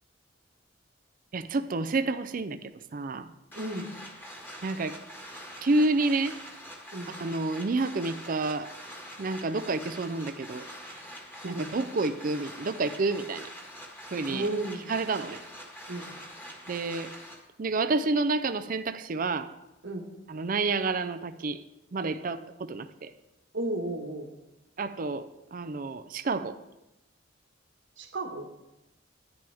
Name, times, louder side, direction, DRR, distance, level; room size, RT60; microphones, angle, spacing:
voice 1, 1.3-2.6 2.9-3.3 4.6-5.0 5.6-6.4 7.2-8.7 9.2-10.6 10.9-11.0 11.4-13.5 14.1-14.5 14.9-15.4 16.7-17.1 17.6-19.5 20.3-21.6 21.9-23.1 24.8-26.6, right 3 dB, 45° right, 10 dB, 0.5 m, -29 dB
sound 1, 3.5-17.4, equal, 10° left, 1.7 m, -44 dB
voice 2, 3.5-3.9 6.9-7.1 11.4-11.7 14.3-14.9 15.9-16.1 19.8-20.1 23.5-24.3 28.0-28.5, right 2 dB, 70° right, 1 dB, 1.4 m, -33 dB
10.5 x 10.5 x 3.5 m, 0.93 s
head